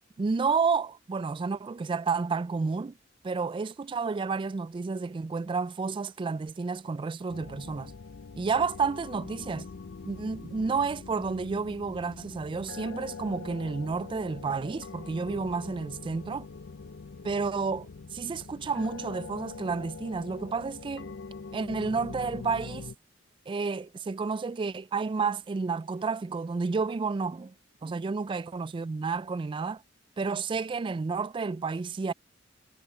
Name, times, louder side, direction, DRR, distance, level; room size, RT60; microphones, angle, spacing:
voice 1, 0.2-2.9 3.2-7.9 8.4-9.7 10.1-16.5 17.2-21.1 21.5-22.9 23.5-27.5 27.8-29.8 30.2-32.1, right 4 dB, 25° right, 0.3 m, -31 dB
sound 1, 7.3-22.9, left 4 dB, 75° left, 0.6 m, -43 dB
head